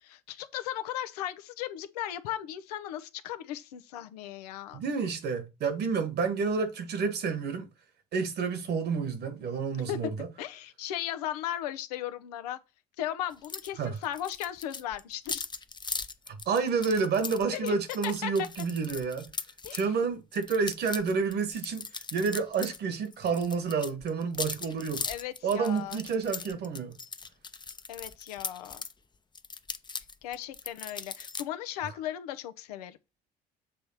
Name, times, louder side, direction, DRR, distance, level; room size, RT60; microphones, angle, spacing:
voice 1, 0.0-4.8 9.9-10.0 10.4-12.6 13.0-15.4 17.5-17.8 18.0-18.5 19.6-19.9 25.1-26.0 27.9-28.8 30.2-33.0, left 12 dB, 80° left, 0.8 m, -36 dB
voice 2, 4.7-7.7 8.1-10.3 13.8-14.0 16.3-19.3 19.7-21.9 22.1-25.0 25.4-27.0, right 5 dB, 55° right, 1.8 m, -29 dB
sound 1, 13.4-13.7 14.0-19.9 20.3-22.8 23.0-28.9 29.3-31.4, left 4 dB, 20° left, 0.8 m, -39 dB
7.6 x 3.3 x 5.7 m
hypercardioid pair, 55°, 20 cm